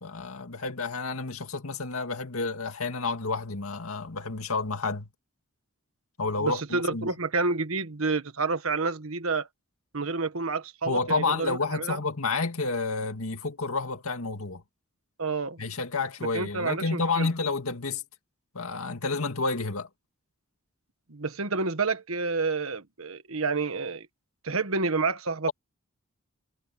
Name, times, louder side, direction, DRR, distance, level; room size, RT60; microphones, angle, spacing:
voice 1, 0.0-5.1 6.2-7.1 10.8-14.6 15.6-18.0 18.5-19.9, left 3 dB, 90° left, 2.1 m, -30 dB
voice 2, 6.4-9.5 9.9-12.0 15.2-15.6 16.3-17.3 21.1-24.1 24.4-25.5, right 4 dB, 75° right, 1.4 m, -29 dB
head